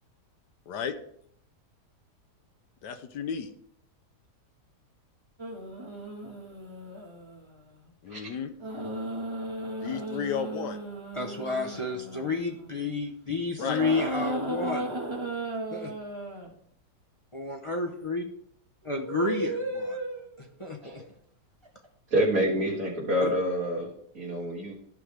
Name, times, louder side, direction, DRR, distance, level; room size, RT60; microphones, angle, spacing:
voice 1, 2.8-3.5 8.0-8.5 9.8-10.8 13.6-13.8, left 7 dB, 80° left, 8 dB, 1.3 m, -33 dB
sound 1, 5.4-7.5 8.6-12.9 13.6-16.5 18.8-20.4 21.6-21.9, right 1 dB, 20° right, 1.3 m, -35 dB
voice 2, 11.1-15.1 15.7-15.9 17.3-18.2 18.8-20.0 20.4-21.0 23.2-23.3, left 3 dB, 50° left, 1 dB, 0.3 m, -31 dB
voice 3, 22.1-24.7, equal, 55° right, -5 dB, 2.1 m, -27 dB
13.5 x 5.0 x 3.3 m, 0.66 s
omnidirectional pair, 1.8 m